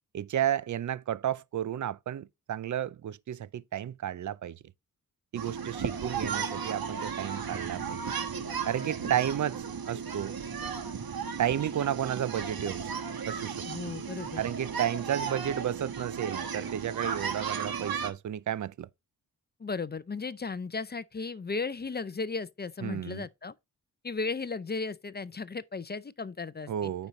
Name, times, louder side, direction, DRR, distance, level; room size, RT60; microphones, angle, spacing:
voice 1, 0.1-4.6 5.3-8.0 8.7-10.4 11.4-12.9 13.2-13.6 14.4-18.9 22.8-23.2 26.7-27.1, right 10 dB, 55° right, 0.5 m, -32 dB
sound 1, 5.3-18.1, right 6 dB, 75° right, 1.3 m, -35 dB
voice 2, 13.7-14.4 19.6-23.5 24.0-26.9, left 4 dB, 30° left, 0.5 m, -35 dB
8.9 x 5.4 x 3.1 m
wide cardioid pair, 85°, 36 cm